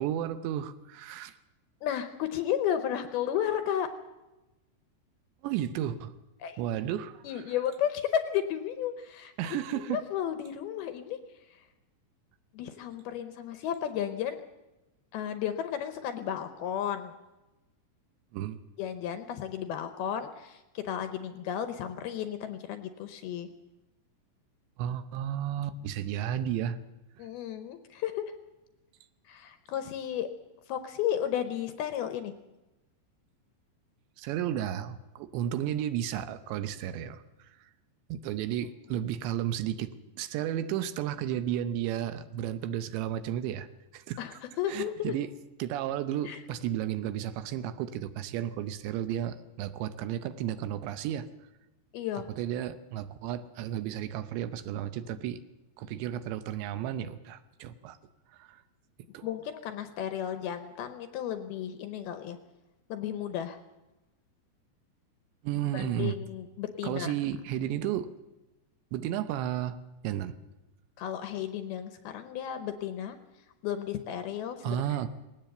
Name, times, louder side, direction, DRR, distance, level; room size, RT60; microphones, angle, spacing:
voice 1, 0.0-1.3 5.4-6.1 6.6-7.2 9.4-10.0 18.3-18.6 24.8-26.8 34.2-37.2 38.1-43.7 43.9-44.2 44.7-45.3 45.6-51.3 52.4-55.4 55.8-58.0 58.4-58.6 59.1-59.3 65.4-66.2 66.8-68.1 68.9-69.8 70.0-70.3 74.6-75.1, right 11 dB, 80° right, 12 dB, 3.0 m, -33 dB
voice 2, 1.8-3.9 6.4-6.6 7.2-11.2 11.5-11.6 12.5-14.4 15.1-17.2 18.8-23.5 27.2-28.3 29.3-30.3 30.7-32.3 38.9-39.0 44.2-45.1 46.3-46.4 51.9-52.3 59.2-62.4 62.9-63.6 65.7-67.1 71.0-73.2 73.6-74.8, left 10 dB, 75° left, 9 dB, 2.4 m, -33 dB
19.5 x 17.5 x 7.8 m, 1.0 s
omnidirectional pair, 5.2 m